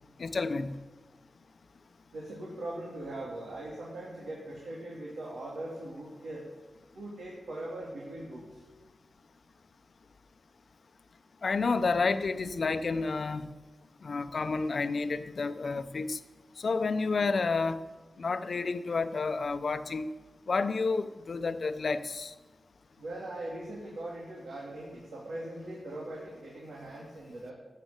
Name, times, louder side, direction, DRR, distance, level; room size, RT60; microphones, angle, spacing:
voice 1, 0.2-0.8 11.4-13.5 14.0-16.2 16.6-17.8 18.2-20.1 20.5-22.3, left 4 dB, 55° left, 11 dB, 0.7 m, -30 dB
voice 2, 2.1-6.5 6.9-8.6 23.0-27.5, right 1 dB, 90° right, -5 dB, 3.2 m, -40 dB
14.0 x 7.7 x 8.2 m, 1.3 s
wide cardioid pair, 90°, 0 cm